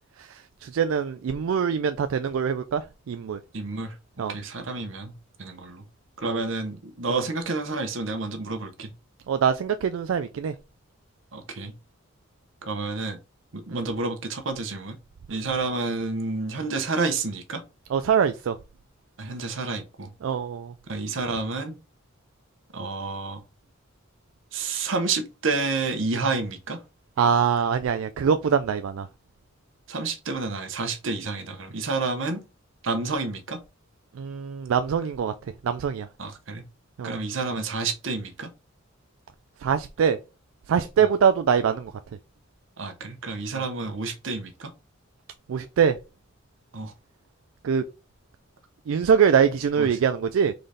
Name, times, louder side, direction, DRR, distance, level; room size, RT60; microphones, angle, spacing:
voice 1, 0.2-3.4 4.2-4.3 6.2-6.4 9.3-10.5 13.7-13.8 15.3-15.4 17.9-18.6 20.2-20.7 27.2-29.1 34.1-35.3 35.6-36.1 37.0-37.2 39.6-40.2 40.7-41.9 43.5-43.6 45.5-46.0 47.6-47.8 48.9-50.5, right 7 dB, 80° right, 0.3 m, -23 dB
voice 2, 3.5-5.1 5.4-5.8 6.2-8.9 11.3-11.7 12.6-13.2 13.5-15.0 15.3-17.6 19.2-20.1 20.9-21.8 22.7-23.4 24.5-26.8 29.9-32.4 32.8-33.6 36.2-36.6 37.0-38.5 41.0-41.1 42.8-44.7 46.7-46.9 49.8-49.9, right 3 dB, 65° right, 0.9 m, -29 dB
3.9 x 3.8 x 3.3 m
head